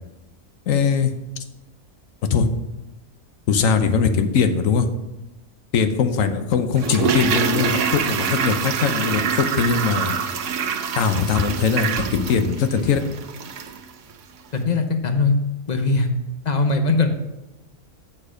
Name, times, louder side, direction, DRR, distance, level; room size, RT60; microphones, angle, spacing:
voice 1, 0.7-1.1 2.3-2.5 3.5-4.9 5.7-10.1 11.0-13.0, left 6 dB, 65° left, 8 dB, 1.1 m, -20 dB
Toilet flush, 6.8-13.8 14.1-14.2, right 7 dB, 60° right, 1.0 m, -25 dB
voice 2, 14.5-15.3 15.7-16.1 16.4-17.1, left 3 dB, 40° left, 6 dB, 0.7 m, -20 dB
7.4 x 6.6 x 5.0 m, 0.98 s
omnidirectional pair, 1.6 m